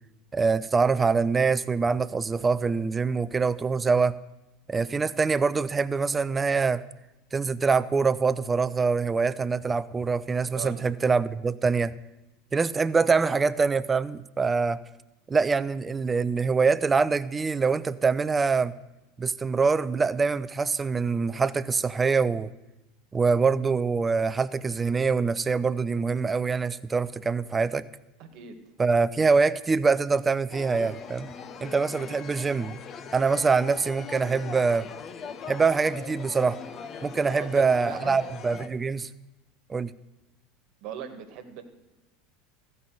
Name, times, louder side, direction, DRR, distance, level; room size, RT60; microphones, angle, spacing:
voice 1, 0.3-4.2 4.7-6.8 7.3-11.9 12.5-14.8 15.3-18.7 19.2-22.5 23.1-27.8 28.8-31.3 31.6-32.8 33.1-34.9 35.5-36.6 37.0-39.1 39.7-39.9, right 4 dB, 20° right, 17 dB, 0.5 m, -24 dB
voice 2, 28.2-28.6 37.3-38.2 40.8-41.6, right 8 dB, 55° right, 7 dB, 1.5 m, -39 dB
sound 1, 30.5-38.7, left 6 dB, 40° left, 0.8 m, -40 dB
14.0 x 5.5 x 7.8 m, 1.0 s
hypercardioid pair, 80°, 0 cm